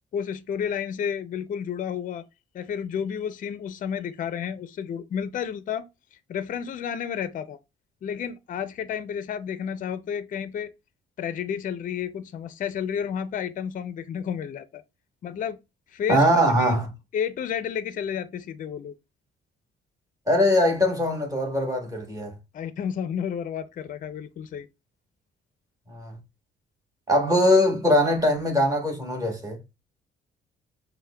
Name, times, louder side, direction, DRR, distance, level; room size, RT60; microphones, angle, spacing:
voice 1, 0.1-2.2 2.5-5.9 6.3-7.6 8.0-10.7 11.2-14.8 15.2-15.6 15.9-16.8 17.1-18.9 22.5-24.7, left 8 dB, 45° left, 0.4 m, -31 dB
voice 2, 16.1-16.9 20.3-22.3 25.9-26.2 27.1-29.6, left 1 dB, 15° right, 1.2 m, -21 dB
5.4 x 2.1 x 2.2 m
cardioid pair, 90°, 20 cm